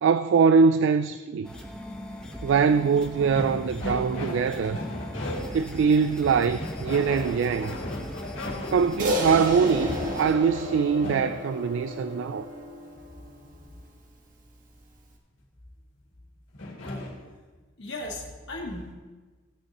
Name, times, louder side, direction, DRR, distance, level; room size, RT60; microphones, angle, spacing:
voice 1, 0.0-1.5 2.4-4.8 5.5-7.8 8.7-12.5, right 5 dB, 70° right, 0.3 m, -23 dB
sound 1, 1.4-10.3, equal, 5° left, 1.0 m, -40 dB
sound 2, 3.3-5.7 6.2-11.3 16.5-17.1, left 1 dB, 75° left, 2.2 m, -36 dB
Crash cymbal, 9.0-13.6, left 1 dB, 45° right, 1.4 m, -32 dB
voice 2, 17.8-18.9, left 2 dB, 60° left, 2.0 m, -36 dB
15.5 x 9.5 x 3.0 m
head